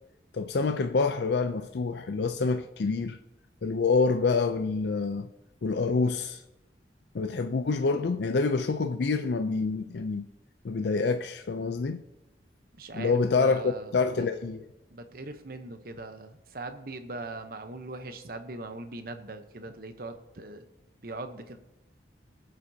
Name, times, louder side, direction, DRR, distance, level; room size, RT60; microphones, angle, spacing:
voice 1, 0.3-3.2 3.6-5.3 5.6-6.4 7.1-10.2 10.6-12.0 12.9-14.6, left 4 dB, 70° left, 0.5 m, -27 dB
voice 2, 12.8-14.3 14.9-20.6 21.0-21.6, right 2 dB, 55° right, 0.9 m, -40 dB
21.5 x 7.6 x 2.8 m
head